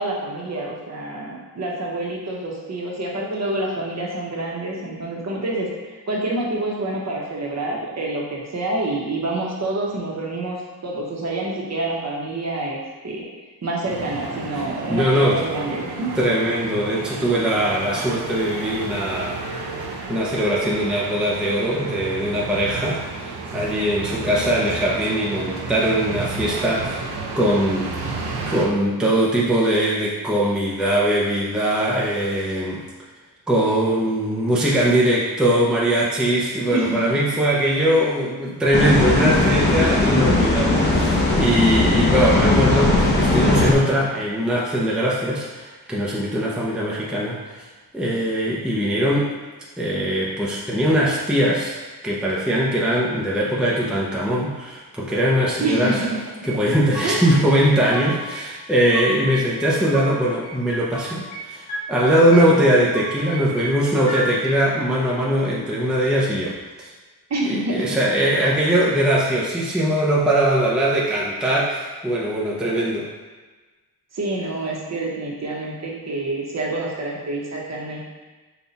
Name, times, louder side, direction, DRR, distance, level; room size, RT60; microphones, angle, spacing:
voice 1, 0.0-12.8 13.0-13.3 13.6-16.1 36.7-37.2 55.6-56.2 57.0-57.4 67.3-68.0 74.1-78.0, right 2 dB, 45° right, -3 dB, 0.9 m, -27 dB
sound 1, 13.8-28.7, right 3 dB, 80° right, 0.7 m, -32 dB
voice 2, 14.9-15.4 16.2-19.4 20.1-27.0 27.4-28.2 28.5-32.8 33.5-47.4 47.9-49.3 49.8-51.8 52.0-56.0 56.5-66.9 67.4-73.1, right 1 dB, ahead, -5 dB, 0.6 m, -21 dB
sound 2, 38.7-43.7, left 2 dB, 25° left, 0.8 m, -18 dB
sound 3, 56.4-57.4 57.7-58.4 58.7-60.1 60.4-61.4 61.7-62.4 62.7-64.2, right 1 dB, 55° left, 1.3 m, -33 dB
5.6 x 2.3 x 4.0 m, 1.3 s
wide cardioid pair, 140°, 39 cm